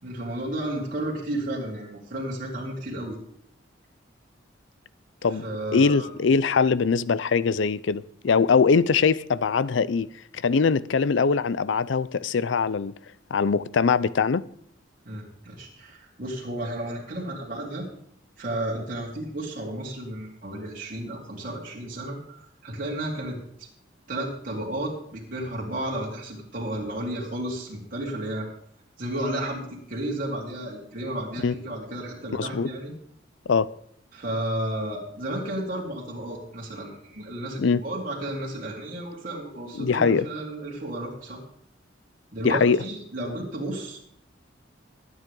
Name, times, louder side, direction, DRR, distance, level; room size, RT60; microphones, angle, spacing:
voice 1, 0.0-3.2 5.4-6.1 15.1-17.9 18.4-23.4 24.1-28.5 29.0-32.9 34.1-41.4 42.3-44.0, right 1 dB, 45° right, 3.9 m, -32 dB
voice 2, 5.7-10.1 10.3-12.9 13.3-14.4 31.4-31.5 32.3-32.7 33.5-33.7 37.6-37.8 39.8-40.3 42.4-42.8, left 5 dB, 70° left, 0.5 m, -22 dB
21.0 x 9.4 x 3.8 m
head